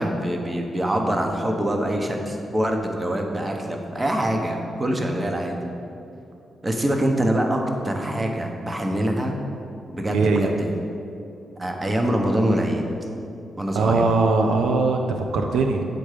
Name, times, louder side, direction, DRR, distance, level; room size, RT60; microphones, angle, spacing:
voice 1, 0.0-5.5 6.6-9.4 9.9-10.8 11.6-12.8 13.6-14.1, right 1 dB, 25° right, 3 dB, 0.9 m, -24 dB
voice 2, 10.1-10.5 13.8-15.9, right 3 dB, 80° right, 3 dB, 0.4 m, -21 dB
7.8 x 3.7 x 4.9 m, 2.7 s
supercardioid pair, 55°, 0 cm